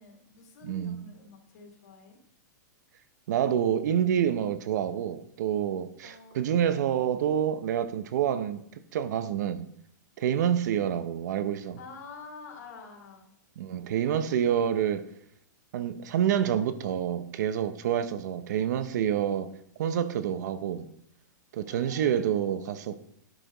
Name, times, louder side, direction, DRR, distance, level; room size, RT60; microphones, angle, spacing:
voice 1, 0.0-2.2 6.0-6.8 11.8-13.3 17.9-18.3 21.7-22.7, left 4 dB, 65° left, 2.7 m, -48 dB
voice 2, 0.6-1.0 3.3-8.6 8.9-9.7 10.2-11.8 13.6-15.1 15.7-19.5 19.8-20.9 21.5-23.0, right 9 dB, 65° right, 0.7 m, -27 dB
11.5 x 5.0 x 3.9 m
hypercardioid pair, 140°, 10 cm